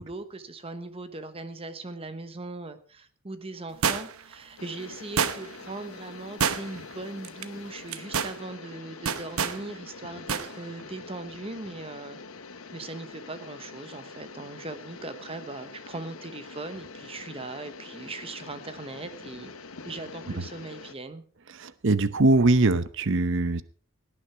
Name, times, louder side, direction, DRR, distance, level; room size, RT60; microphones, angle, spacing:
voice 1, 0.0-12.2 12.7-19.5 19.8-21.2, right 2 dB, 25° right, 10 dB, 1.0 m, -39 dB
sound 1, 3.8-4.3 5.2-5.7 6.4-6.9 7.2-7.4 7.9-8.4 9.1-9.6 10.3-10.5 10.8-10.9, right 6 dB, 85° right, 1.0 m, -27 dB
sound 2, 4.6-20.9, left 4 dB, 75° left, 1.1 m, -45 dB
voice 2, 21.6-23.6, right 2 dB, 60° right, 15 dB, 0.8 m, -22 dB
17.5 x 9.9 x 4.6 m, 0.42 s
head